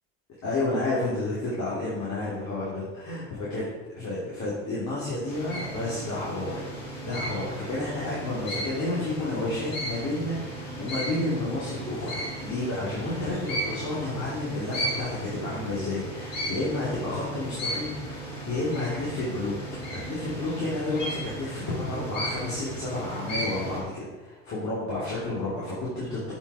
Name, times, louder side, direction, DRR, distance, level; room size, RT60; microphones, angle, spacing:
voice 1, 0.4-3.7 3.9-6.6 7.0-26.3, left 2 dB, 45° left, -8 dB, 3.0 m, -31 dB
ornate hawk eagle, 5.3-23.8, right 1 dB, 85° left, 2.9 m, -35 dB
7.6 x 5.8 x 4.9 m, 1.2 s
hypercardioid pair, 75°, 38 cm